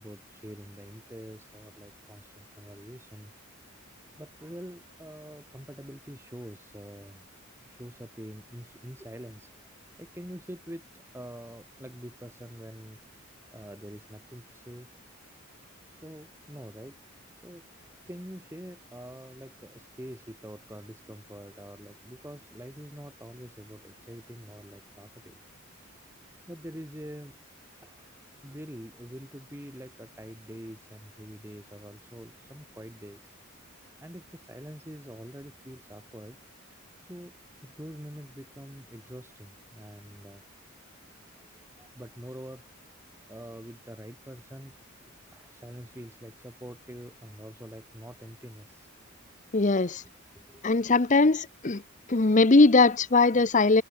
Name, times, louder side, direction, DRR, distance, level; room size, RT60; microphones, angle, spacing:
voice 1, 0.0-3.3 3.7-3.8 4.2-7.2 7.6-13.0 13.5-14.9 15.9-17.0 17.4-17.7 18.0-25.4 26.2-27.3 27.8-28.1 28.4-33.3 34.0-36.4 37.0-37.3 37.6-40.6 41.3-42.6 43.3-48.9 50.0-50.7, equal, 10° right, 4.3 m, -45 dB
voice 2, 49.5-50.0 50.6-51.8 52.1-53.8, left 3 dB, 35° left, 0.8 m, -20 dB
head